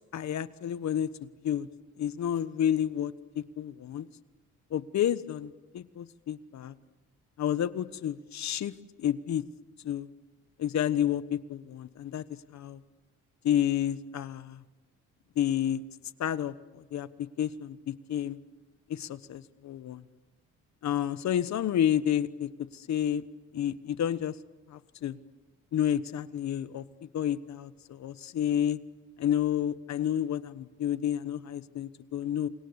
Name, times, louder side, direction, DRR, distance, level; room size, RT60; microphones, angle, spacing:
voice 1, 0.1-1.1 1.4-1.7 2.0-4.1 4.7-6.7 7.4-8.7 9.0-9.4 9.8-10.1 10.6-12.2 12.5-12.8 13.4-14.6 15.4-15.8 16.2-17.1 17.4-18.4 18.9-20.0 20.8-23.2 23.5-24.4 24.7-25.2 25.7-28.8 29.2-32.5, left 10 dB, 65° left, 14 dB, 1.2 m, -30 dB
29.0 x 25.0 x 8.2 m, 1.2 s
cardioid pair, 90°, 30 cm